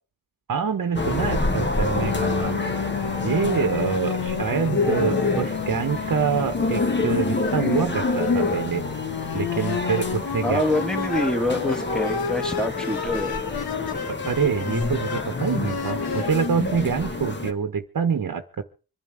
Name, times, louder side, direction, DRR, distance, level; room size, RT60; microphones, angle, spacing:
voice 1, 0.5-2.6 3.2-8.9 9.3-10.6 14.1-18.6, right 6 dB, 60° right, 7 dB, 1.2 m, -26 dB
sound 1, 0.9-17.5, left 3 dB, 30° left, 1.6 m, -27 dB
sound 2, 2.0-16.5, left 7 dB, 80° left, 1.1 m, -31 dB
voice 2, 10.4-13.4, left 1 dB, ahead, 4 dB, 2.0 m, -25 dB
25.5 x 11.0 x 3.5 m, 0.38 s
wide cardioid pair, 115°, 37 cm